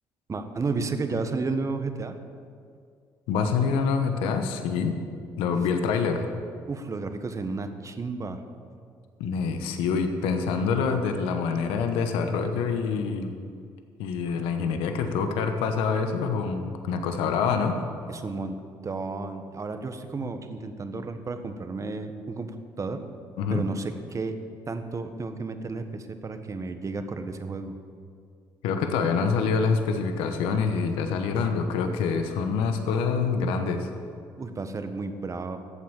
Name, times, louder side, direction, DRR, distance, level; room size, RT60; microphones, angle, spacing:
voice 1, 0.3-2.2 6.7-8.4 18.1-18.6 18.8-23.0 23.5-24.4 24.7-27.7 34.4-35.6, right 3 dB, 35° right, 7 dB, 1.3 m, -32 dB
voice 2, 3.3-5.0 5.4-6.2 9.2-13.4 14.0-17.8 23.4-23.6 28.6-33.9, left 5 dB, 85° left, 6 dB, 1.1 m, -26 dB
14.0 x 8.2 x 7.3 m, 2.2 s
supercardioid pair, 65°, 9 cm